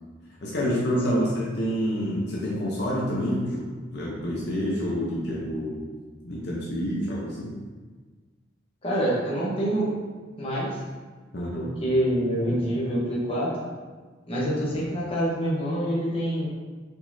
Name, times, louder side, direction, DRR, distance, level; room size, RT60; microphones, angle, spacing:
voice 1, 0.4-3.6 3.9-5.8 6.2-7.6 11.3-11.7, equal, 60° left, -4 dB, 0.7 m, -28 dB
voice 2, 8.8-9.9 10.4-10.7 11.5-13.5 14.3-16.5, equal, 30° left, -6 dB, 1.0 m, -26 dB
4.8 x 4.0 x 2.7 m, 1.4 s
head